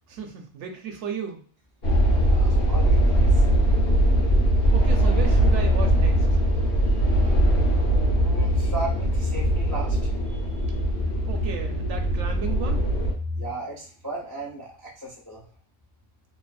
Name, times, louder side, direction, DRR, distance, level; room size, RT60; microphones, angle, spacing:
voice 1, 0.1-1.4 4.7-6.4 11.3-12.9, right 6 dB, 75° right, 4 dB, 0.9 m, -34 dB
sound 1, 1.8-13.1, right 1 dB, 60° left, 1.0 m, -21 dB
voice 2, 2.2-3.4 6.9-7.0 8.1-10.8 13.2-15.5, right 1 dB, 25° left, -5 dB, 0.4 m, -36 dB
2.6 x 2.4 x 2.3 m, 0.43 s
omnidirectional pair, 1.3 m